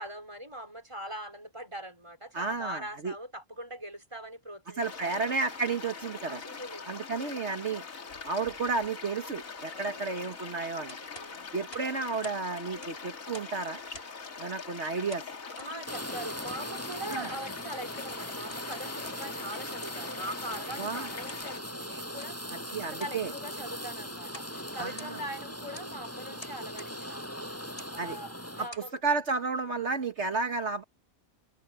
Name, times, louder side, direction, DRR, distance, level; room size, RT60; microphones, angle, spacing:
voice 1, 0.0-5.3 6.2-6.8 7.2-7.4 9.7-10.3 11.1-11.6 12.7-13.0 15.6-22.4 22.7-27.5 27.9-29.0 29.5-29.8, right 1 dB, 20° right, 4.9 m, -42 dB
voice 2, 2.3-3.1 4.8-6.4 6.9-7.8 8.2-11.0 11.5-13.8 14.4-15.2 17.1-17.3 20.8-21.1 22.7-23.3 24.8-25.2 28.0-28.2 28.6-28.7 29.0-30.8, right 4 dB, 55° right, 1.7 m, -32 dB
sound 1, 4.8-21.6, left 5 dB, 75° left, 2.3 m, -43 dB
sound 2, 10.9-12.4 12.7-13.6 13.9-14.3 15.1-15.8 16.5-16.6 17.0-17.3 17.9-18.7 19.1-19.5 19.8-20.1 20.5-20.7 21.3-21.5 22.1-22.4 22.8-23.2 23.5-23.8 24.3-24.6 24.8-25.4 25.7-25.9 26.4-27.0 27.7-28.0 28.5-28.9, left 1 dB, 45° left, 7.9 m, -49 dB
Fire, 15.9-28.7, equal, 10° left, 6.6 m, -40 dB
omnidirectional pair, 1.4 m